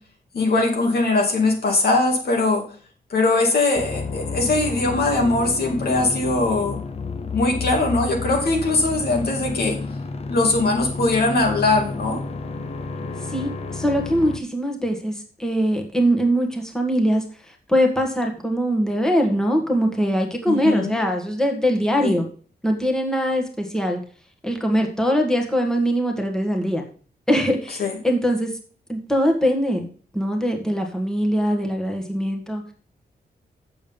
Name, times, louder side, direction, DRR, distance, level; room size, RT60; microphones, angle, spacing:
voice 1, 0.3-2.6 3.1-6.8 7.3-9.8 10.3-12.2 20.5-20.9 22.0-22.2 27.8-28.0, left 2 dB, 75° left, 2 dB, 2.6 m, -21 dB
sound 1, 3.7-14.4, left 4 dB, 40° left, 0.7 m, -31 dB
voice 2, 13.3-15.1 15.4-17.2 17.7-22.2 22.6-24.0 24.4-26.8 27.3-28.5 28.9-29.8 30.1-32.6, equal, 5° left, 2 dB, 1.6 m, -22 dB
7.8 x 7.1 x 5.3 m, 0.41 s
wide cardioid pair, 160°, 16 cm